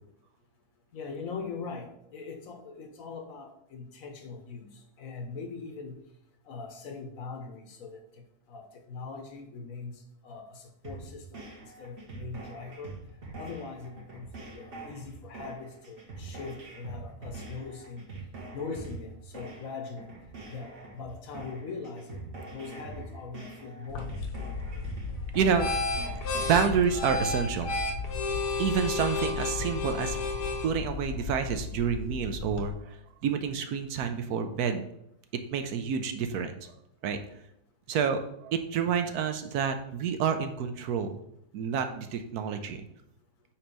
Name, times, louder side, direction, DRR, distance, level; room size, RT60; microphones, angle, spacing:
voice 1, 0.9-4.7 5.0-6.0 6.5-8.0 8.5-9.9 10.2-11.4 11.8-13.0 13.4-14.3 14.5-18.0 18.5-20.1 20.5-22.2 22.5-24.2, left 4 dB, 60° left, 5 dB, 1.1 m, -41 dB
sound 1, 10.8-26.8, right 3 dB, 40° right, 1.2 m, -44 dB
sound 2, 23.9-32.7, left 4 dB, 80° left, 1.4 m, -32 dB
voice 2, 25.3-25.7 26.5-27.8 28.6-30.2 30.6-34.9 35.5-36.7 37.0-37.2 37.9-41.2 41.5-42.8, right 7 dB, 75° right, 7 dB, 1.0 m, -29 dB
4.5 x 4.3 x 5.2 m, 0.78 s
omnidirectional pair, 1.8 m